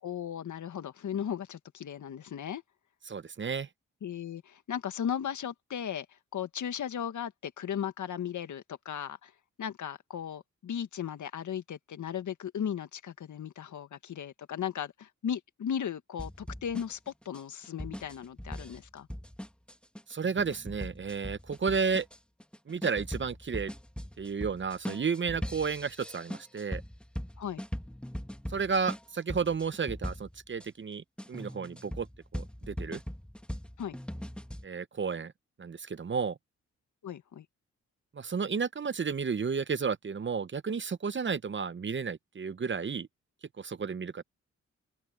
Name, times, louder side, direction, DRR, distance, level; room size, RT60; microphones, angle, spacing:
voice 1, 0.0-2.6 4.0-6.1 6.3-9.3 9.6-19.1 27.4-27.6 33.8-34.0 37.0-37.5, left 9 dB, 70° left, 1.8 m, -36 dB
voice 2, 3.1-3.7 20.1-22.1 22.7-23.7 24.2-26.8 28.5-32.1 32.3-33.0 34.6-35.3 35.6-36.4 38.1-43.1 43.6-44.2, right 5 dB, 35° right, 0.9 m, -32 dB
sound 1, 16.2-30.7 31.2-34.6, equal, 5° left, 1.7 m, -40 dB
open air
supercardioid pair, 55°, 31 cm